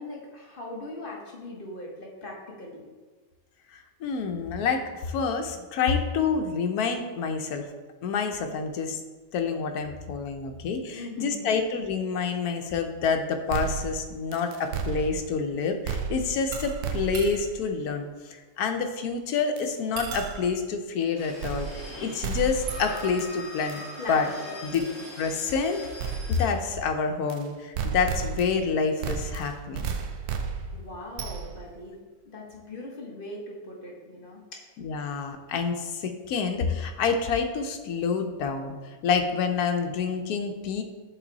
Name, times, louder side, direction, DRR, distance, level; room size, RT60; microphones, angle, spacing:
voice 1, 0.0-2.8 10.9-11.5 24.0-25.0 30.7-32.0 32.3-34.6, left 2 dB, 40° left, -2 dB, 1.1 m, -40 dB
voice 2, 3.7-7.6 8.0-9.0 9.3-23.8 24.1-24.3 24.6-24.8 25.2-25.8 26.3-29.9 34.8-40.8, left 5 dB, 80° left, 5 dB, 1.2 m, -28 dB
sound 1, 13.5-15.4 15.8-17.6 19.6-19.7 20.0-20.6 21.4-21.9 22.2-23.3 23.7-23.8 24.7-24.9 26.0-26.5 27.3-27.4 27.7-28.7 29.0-31.7, right 6 dB, 80° right, 1.1 m, -33 dB
sound 2, 21.2-26.5, left 1 dB, 20° left, 1.4 m, -42 dB
7.8 x 4.0 x 3.9 m, 1.3 s
omnidirectional pair, 1.6 m